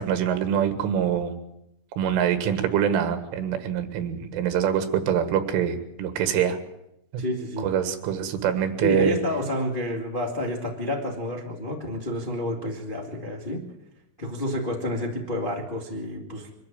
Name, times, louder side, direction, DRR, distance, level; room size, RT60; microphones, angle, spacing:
voice 1, 0.0-1.4 2.0-6.6 7.1-7.2 7.6-9.1, right 9 dB, 90° right, 9 dB, 4.2 m, -24 dB
voice 2, 7.2-7.7 8.8-13.7 14.2-16.5, equal, 25° left, 0 dB, 1.1 m, -29 dB
24.0 x 12.5 x 8.8 m, 0.82 s
omnidirectional pair, 5.5 m